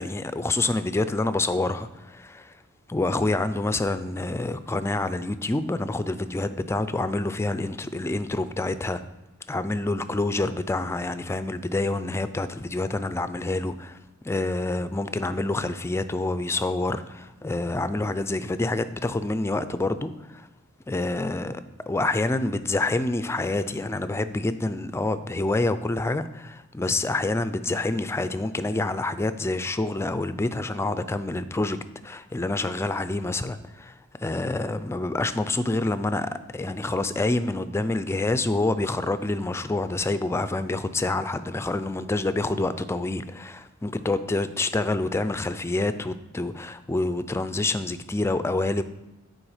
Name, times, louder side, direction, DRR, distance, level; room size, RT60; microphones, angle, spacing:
voice 1, 0.0-2.5 2.9-9.0 9.5-14.0 14.2-20.5 20.9-31.8 32.0-33.9 34.2-48.8, left 2 dB, 10° left, 12 dB, 0.3 m, -27 dB
8.8 x 4.5 x 4.9 m, 1.0 s
head